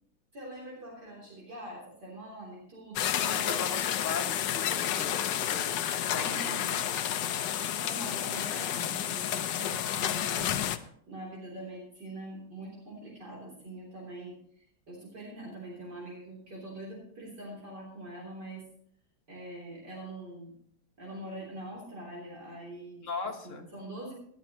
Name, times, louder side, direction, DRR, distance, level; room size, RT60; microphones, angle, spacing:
voice 1, 0.3-3.6 6.2-6.8 7.5-10.5 11.1-18.6 19.3-20.5 21.0-23.1 23.4-24.1, right 1 dB, 60° right, -4 dB, 4.2 m, -43 dB
sound 1, 3.0-10.8, left 10 dB, 70° left, 1.4 m, -30 dB
voice 2, 3.6-7.2 23.0-23.7, left 4 dB, 45° left, 4 dB, 1.7 m, -40 dB
19.0 x 11.5 x 3.0 m, 0.64 s
omnidirectional pair, 2.0 m